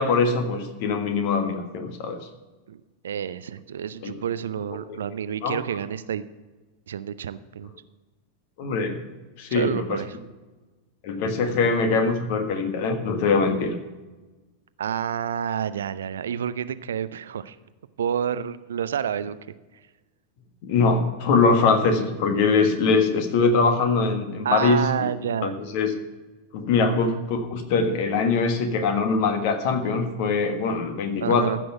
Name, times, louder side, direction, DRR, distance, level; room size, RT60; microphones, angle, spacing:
voice 1, 0.0-2.2 4.0-4.2 4.9-5.0 5.4-5.6 8.6-9.0 9.4-10.0 11.0-13.8 20.6-25.1 25.4-25.9 26.5-31.6, left 4 dB, 50° left, 7 dB, 1.5 m, -22 dB
voice 2, 3.0-6.3 6.9-7.7 9.5-10.2 14.8-17.6 18.0-19.4 24.4-25.6 26.8-27.2 31.2-31.6, right 8 dB, 65° right, 15 dB, 0.5 m, -29 dB
14.5 x 6.2 x 5.9 m, 1.2 s
figure-of-eight pair, 90°, 0 cm